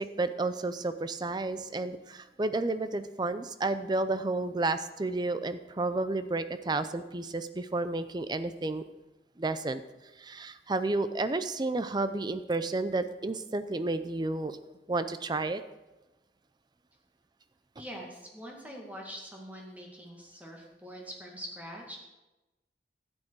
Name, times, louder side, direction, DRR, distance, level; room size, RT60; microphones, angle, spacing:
voice 1, 0.0-8.8 9.4-9.8 10.2-14.6 14.9-15.6, right 2 dB, 25° right, 12 dB, 0.5 m, -31 dB
voice 2, 17.8-22.0, equal, 10° right, -1 dB, 2.0 m, -44 dB
12.0 x 8.9 x 4.7 m, 1.0 s
head